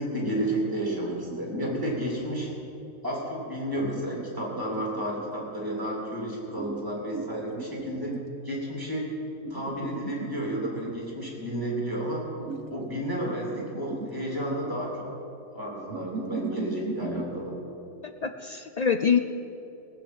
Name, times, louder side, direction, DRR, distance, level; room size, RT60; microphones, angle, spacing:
voice 1, 0.0-2.5 3.0-8.2 8.4-9.1 9.5-12.3 12.7-15.1 15.5-17.6, right 1 dB, 15° right, -3 dB, 3.2 m, -31 dB
sound 1, 0.9-2.7 3.7-5.5 6.5-8.4 9.4-11.0 12.4-13.0 13.3-14.8 15.9-17.4, right 4 dB, 65° right, 1.3 m, -38 dB
voice 2, 18.0-19.2, left 6 dB, 65° left, 7 dB, 0.4 m, -25 dB
18.0 x 7.3 x 8.0 m, 3.0 s
omnidirectional pair, 1.3 m